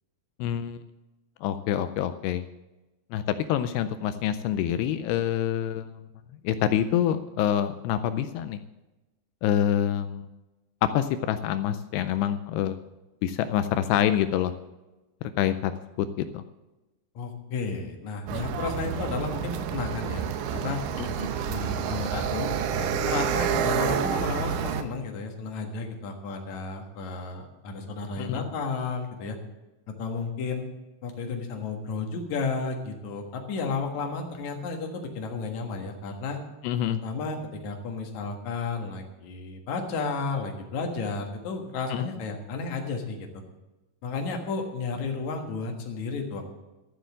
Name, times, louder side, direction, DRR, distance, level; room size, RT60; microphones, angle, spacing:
voice 1, 0.4-0.8 1.4-2.5 3.1-5.9 6.4-8.6 9.4-10.3 10.9-12.8 13.2-14.5 15.2-15.7 16.0-16.4 21.0-21.3 28.2-28.4 36.6-37.0 41.9-42.1, left 10 dB, 85° left, 11 dB, 2.4 m, -26 dB
voice 2, 17.1-20.3 20.5-20.8 21.5-29.4 30.0-30.7 31.0-36.4 37.0-37.4 37.6-43.4 44.0-46.5, left 4 dB, 55° left, 3 dB, 2.3 m, -32 dB
sound 1, 18.3-24.8, right 8 dB, 80° right, 3.0 m, -29 dB
13.5 x 7.7 x 7.4 m, 1.1 s
omnidirectional pair, 5.1 m